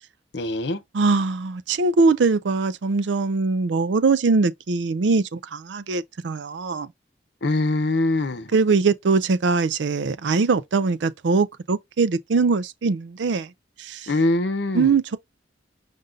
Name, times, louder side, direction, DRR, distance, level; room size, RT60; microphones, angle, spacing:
voice 1, 0.3-0.8 7.4-8.5 14.1-14.9, left 2 dB, 65° left, 0.8 m, -23 dB
voice 2, 0.9-6.9 8.5-13.5 13.8-14.1 14.7-15.2, right 4 dB, 75° right, 0.5 m, -22 dB
5.3 x 2.5 x 3.9 m
head